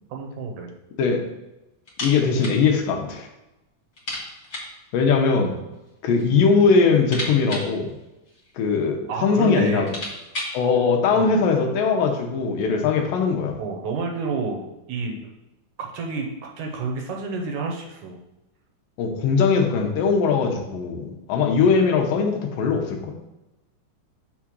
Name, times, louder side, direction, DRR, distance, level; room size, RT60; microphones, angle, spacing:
voice 1, 0.1-0.7 9.1-10.0 11.1-11.3 13.6-15.3 15.8-18.2, right 4 dB, 70° right, 1 dB, 2.1 m, -29 dB
sound 1, 1.8-2.6 2.9-3.0 3.3-3.4 3.9-4.8 5.7-6.3 6.6-8.6 9.3-9.4 9.7-10.6, left 1 dB, 40° left, 1.0 m, -34 dB
voice 2, 2.0-3.3 4.9-5.6 6.0-7.9 8.6-9.9 10.5-13.6 19.0-23.1, left 5 dB, 85° left, 3 dB, 2.6 m, -20 dB
6.2 x 3.7 x 6.0 m, 0.98 s
omnidirectional pair, 3.8 m